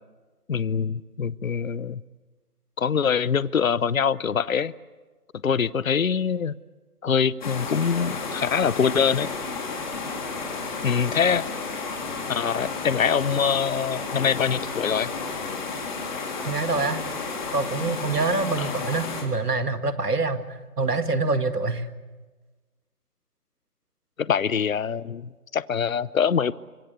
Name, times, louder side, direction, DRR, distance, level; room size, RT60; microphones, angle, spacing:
voice 1, 0.5-2.0 2.8-4.7 5.4-6.5 7.0-9.3 10.8-11.5 12.3-15.1 18.6-18.7 24.2-26.5, left 7 dB, 60° left, 20 dB, 0.8 m, -24 dB
sound 1, 7.4-19.2, left 4 dB, 30° left, 3.7 m, -32 dB
voice 2, 16.5-17.0 17.5-21.9, right 3 dB, 80° right, 9 dB, 2.1 m, -25 dB
25.0 x 22.0 x 8.5 m, 1.3 s
figure-of-eight pair, 160°, 46 cm